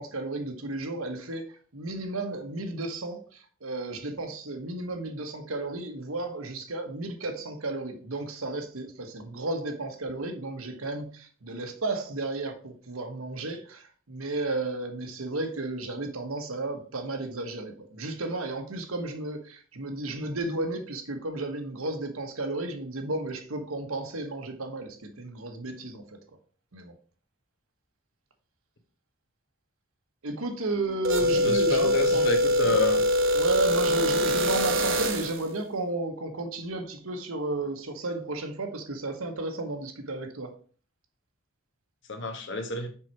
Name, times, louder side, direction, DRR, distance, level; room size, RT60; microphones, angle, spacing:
voice 1, 0.0-26.2 26.7-26.9 30.2-32.3 32.6-32.8 33.3-40.5, right 2 dB, 85° right, 1.3 m, -33 dB
sound 1, 31.0-35.5, equal, 60° right, 1.0 m, -24 dB
voice 2, 31.2-33.0 42.1-42.9, left 3 dB, 60° left, 1.2 m, -30 dB
5.8 x 4.8 x 4.6 m
head